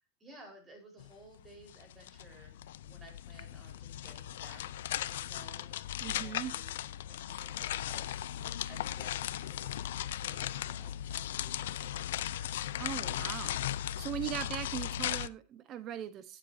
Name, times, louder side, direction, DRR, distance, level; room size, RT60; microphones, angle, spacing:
voice 1, 0.0-2.6 2.8-5.8 6.0-9.8 10.2-12.5, right 2 dB, 15° right, 2 dB, 4.4 m, -56 dB
sound 1, 1.0-1.1 1.4-15.3, left 12 dB, 85° left, 0.5 m, -37 dB
voice 2, 6.0-6.5 12.8-13.6 14.0-16.4, right 10 dB, 35° right, 12 dB, 1.0 m, -39 dB
15.5 x 7.5 x 2.7 m, 0.27 s
supercardioid pair, 150°, 0 cm